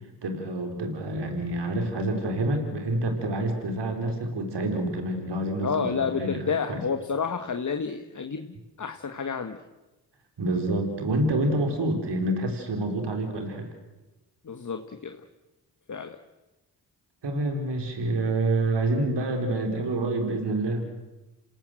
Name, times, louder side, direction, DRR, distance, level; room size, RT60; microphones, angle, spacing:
voice 1, 0.2-6.8 10.4-13.7 17.2-20.8, right 2 dB, 70° right, 5 dB, 4.4 m, -27 dB
voice 2, 5.6-9.6 14.4-15.2 15.9-16.2, left 5 dB, 45° left, 7 dB, 1.6 m, -30 dB
27.5 x 18.0 x 7.8 m, 1.1 s
supercardioid pair, 45°, 42 cm